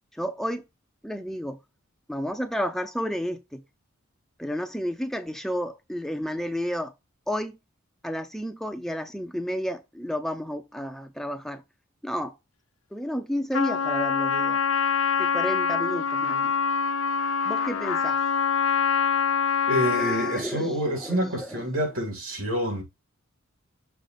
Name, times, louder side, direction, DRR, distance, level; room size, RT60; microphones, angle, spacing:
voice 1, 0.1-0.6 1.0-1.6 2.1-3.6 4.4-6.9 7.3-7.6 8.0-11.6 12.0-12.4 12.9-14.6 15.2-16.5 17.5-18.2 19.9-21.6, equal, ahead, 0.4 m, -31 dB
Trumpet, 13.5-20.5, left 6 dB, 75° left, 0.8 m, -25 dB
voice 2, 19.7-22.8, equal, 75° right, 3.0 m, -27 dB
6.7 x 2.9 x 5.8 m
head